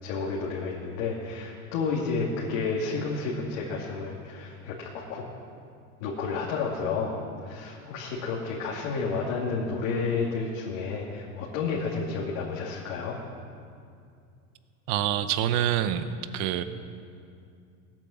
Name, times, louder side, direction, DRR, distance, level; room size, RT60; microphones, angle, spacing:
voice 1, 0.0-5.3 6.0-13.2, left 4 dB, 80° left, -4 dB, 2.6 m, -31 dB
voice 2, 14.9-16.0 16.3-16.6, right 11 dB, 50° right, 11 dB, 0.8 m, -26 dB
19.5 x 9.1 x 7.2 m, 2.4 s
cardioid pair, 165°, 37 cm